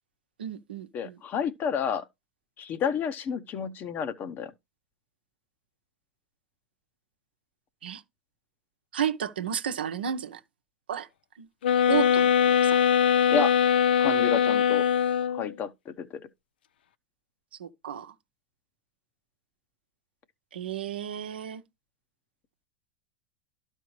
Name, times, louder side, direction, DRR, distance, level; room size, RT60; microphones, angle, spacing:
voice 1, 0.4-1.2 7.8-8.0 8.9-10.4 10.9-11.1 11.4-11.5 11.9-12.8 17.6-18.1 20.5-21.6, right 9 dB, 85° right, 0.8 m, -32 dB
voice 2, 0.9-2.1 2.6-4.5 13.3-13.5 14.0-14.9 15.3-16.3, left 6 dB, 40° left, 0.9 m, -30 dB
sound 1, 11.6-15.5, left 8 dB, 80° left, 0.5 m, -22 dB
12.0 x 4.4 x 3.2 m
hypercardioid pair, 100°, 5 cm